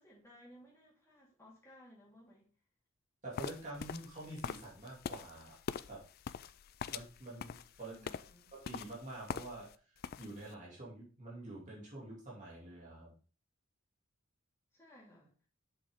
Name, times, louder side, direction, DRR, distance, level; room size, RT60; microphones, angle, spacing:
voice 1, 0.0-2.5 7.9-8.5 14.7-15.3, equal, 10° left, -6 dB, 3.3 m, -59 dB
voice 2, 3.2-5.6 5.9-6.0 6.9-8.0 8.6-9.7 10.2-13.1, right 2 dB, 35° right, -5 dB, 2.5 m, -47 dB
sound 1, 3.3-9.7 10.0-10.5, left 7 dB, 45° left, 0.3 m, -44 dB
7.3 x 6.2 x 3.6 m, 0.39 s
head